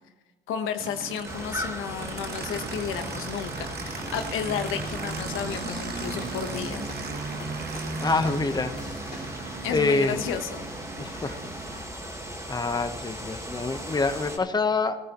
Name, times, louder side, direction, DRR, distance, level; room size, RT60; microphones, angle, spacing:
voice 1, 0.5-6.9 9.6-10.6, left 8 dB, 90° left, 7 dB, 1.2 m, -32 dB
Aircraft, 0.8-11.9, right 4 dB, 55° right, 1.4 m, -37 dB
sound 1, 1.2-14.4, equal, 15° right, 3.6 m, -38 dB
sound 2, 3.8-9.3, left 3 dB, 40° left, 2.8 m, -44 dB
voice 2, 8.0-8.7 9.7-10.2 11.0-11.4 11.7-11.8 12.5-15.0, left 3 dB, 20° left, 8 dB, 1.1 m, -26 dB
18.5 x 13.5 x 3.1 m, 1.2 s
cardioid pair, 90°, 20 cm